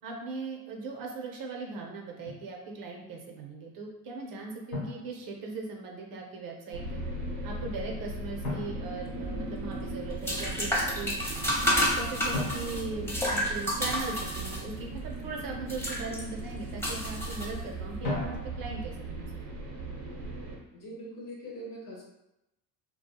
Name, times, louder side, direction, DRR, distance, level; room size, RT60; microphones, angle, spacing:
voice 1, 0.0-7.0 7.4-11.1 11.6-19.7, right 3 dB, 50° right, 0 dB, 0.7 m, -39 dB
Drum, 2.3-2.5 4.7-5.9 8.4-9.8 12.3-14.0 18.0-19.0, left 2 dB, 80° left, 1.1 m, -38 dB
sound 1, 6.7-20.6, right 2 dB, 80° right, 0.8 m, -38 dB
sound 2, 9.1-18.0, equal, 5° left, 0.8 m, -31 dB
voice 2, 20.7-22.1, equal, 45° left, -2 dB, 1.0 m, -42 dB
2.7 x 2.3 x 2.2 m, 0.89 s
hypercardioid pair, 65°, 45 cm